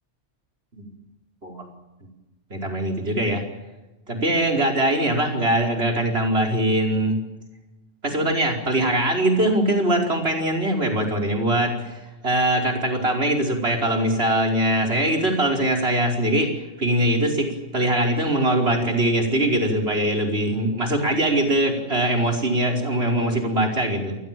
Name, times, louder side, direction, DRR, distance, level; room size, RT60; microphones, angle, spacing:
voice 1, 2.5-3.4 4.1-7.2 8.0-24.1, right 1 dB, 60° right, 2 dB, 5.3 m, -22 dB
27.5 x 20.5 x 7.7 m, 1.1 s
omnidirectional pair, 1.2 m